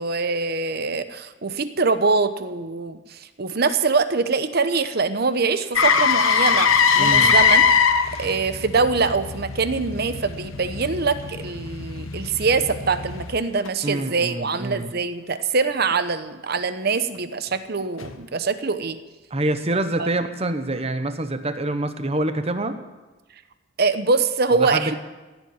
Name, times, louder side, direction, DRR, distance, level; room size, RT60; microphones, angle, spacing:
voice 1, 0.0-6.7 7.0-7.6 8.2-19.0 20.0-20.1 23.8-25.0, right 4 dB, 50° right, 11 dB, 0.9 m, -23 dB
Motor vehicle (road), 5.8-13.7 18.0-18.1, left 6 dB, 85° left, 1.1 m, -21 dB
voice 2, 7.0-7.4 13.8-14.9 19.3-22.8 24.6-25.0, right 2 dB, 30° right, 9 dB, 1.0 m, -26 dB
16.0 x 7.8 x 9.4 m, 1.2 s
head